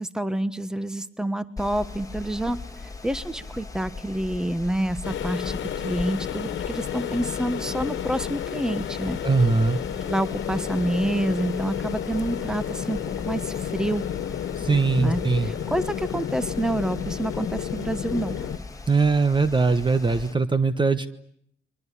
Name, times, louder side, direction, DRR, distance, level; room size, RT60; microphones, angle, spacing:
voice 1, 0.0-9.2 10.1-14.0 15.0-18.5, right 1 dB, 5° right, 14 dB, 1.3 m, -28 dB
Mechanical fan, 1.6-20.3, left 3 dB, 15° left, 2.1 m, -40 dB
sound 1, 5.0-18.6, left 9 dB, 70° left, 1.7 m, -31 dB
voice 2, 9.2-9.8 14.6-15.5 18.9-21.1, right 4 dB, 25° right, 12 dB, 1.2 m, -21 dB
29.5 x 23.0 x 8.5 m, 0.69 s
cardioid pair, 90°, 20 cm